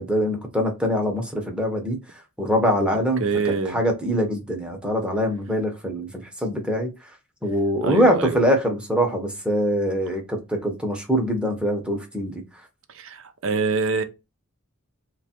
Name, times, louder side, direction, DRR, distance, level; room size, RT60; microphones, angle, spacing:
voice 1, 0.0-2.0 2.4-3.2 3.7-6.1 6.4-6.9 7.4-12.4, equal, 5° right, 0.8 m, -23 dB
voice 2, 3.2-3.8 7.8-8.4 12.9-14.0, right 4 dB, 60° right, 0.6 m, -25 dB
3.2 x 2.3 x 4.3 m
head